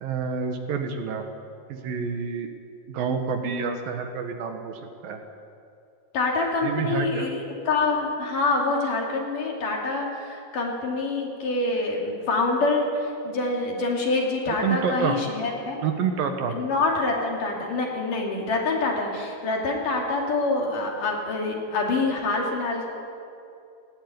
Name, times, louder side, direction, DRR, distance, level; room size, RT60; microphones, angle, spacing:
voice 1, 0.0-1.2 1.7-2.5 2.9-5.2 6.6-7.3 14.5-15.2 15.8-16.6, right 6 dB, 70° right, 5 dB, 3.0 m, -28 dB
voice 2, 6.1-12.9 13.2-15.8 16.5-22.9, left 3 dB, 60° left, -1 dB, 4.3 m, -26 dB
19.0 x 17.0 x 9.6 m, 2.5 s
omnidirectional pair, 4.5 m